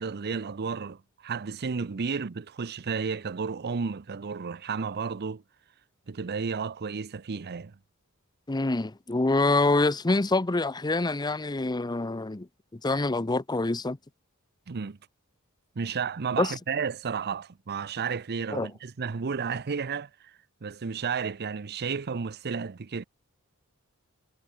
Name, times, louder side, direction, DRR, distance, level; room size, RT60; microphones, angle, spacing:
voice 1, 0.0-5.4 6.1-7.8 14.7-15.0 15.8-20.1 20.6-23.0, right 5 dB, 45° right, 0.6 m, -32 dB
voice 2, 8.5-12.5 12.7-14.0 16.4-16.5 18.5-18.7, left 2 dB, 20° left, 0.7 m, -26 dB
head